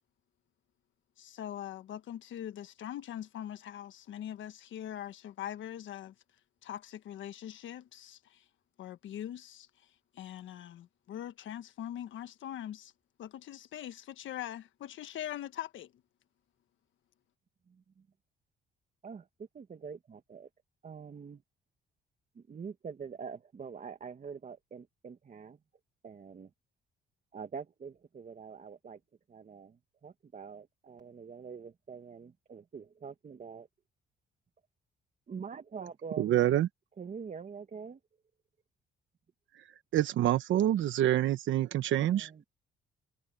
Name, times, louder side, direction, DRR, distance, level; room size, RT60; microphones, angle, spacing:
voice 1, 1.2-6.1 6.6-8.4 8.8-9.7 10.1-12.9 13.2-15.9, left 11 dB, 75° left, 1.3 m, -42 dB
voice 2, 17.7-18.0 19.0-20.5 20.8-21.4 22.4-25.6 26.0-26.5 27.3-29.0 29.3-33.7 35.3-36.4 37.0-38.0 41.9-42.4, right 6 dB, 40° right, 1.8 m, -45 dB
voice 3, 36.2-36.7 39.5-39.6 39.9-42.3, right 12 dB, 75° right, 1.1 m, -27 dB
cardioid pair, 90°, 20 cm